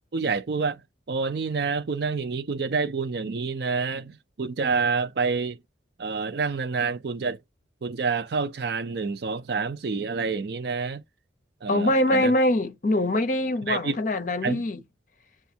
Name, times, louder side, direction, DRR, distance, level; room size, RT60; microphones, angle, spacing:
voice 1, 0.1-0.8 1.1-5.6 6.0-7.4 7.8-11.0 11.6-12.3 13.7-14.0 14.4-14.6, right 4 dB, 55° right, 0.4 m, -28 dB
voice 2, 11.7-14.8, left 1 dB, 40° left, 0.7 m, -23 dB
7.0 x 2.4 x 2.7 m
head